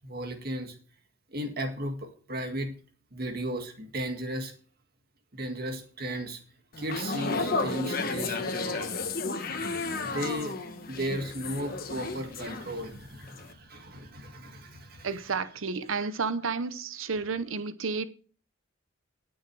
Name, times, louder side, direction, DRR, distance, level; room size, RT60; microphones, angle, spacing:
voice 1, 0.0-0.8 1.3-2.7 3.1-4.5 5.3-6.4 6.8-9.0 10.0-15.1, right 1 dB, 45° right, 2.0 m, -35 dB
sound 1, 6.7-13.0 13.3-13.5, left 3 dB, 45° left, 1.4 m, -33 dB
voice 2, 15.0-18.1, right 4 dB, 75° right, 0.8 m, -31 dB
19.0 x 6.4 x 4.7 m
head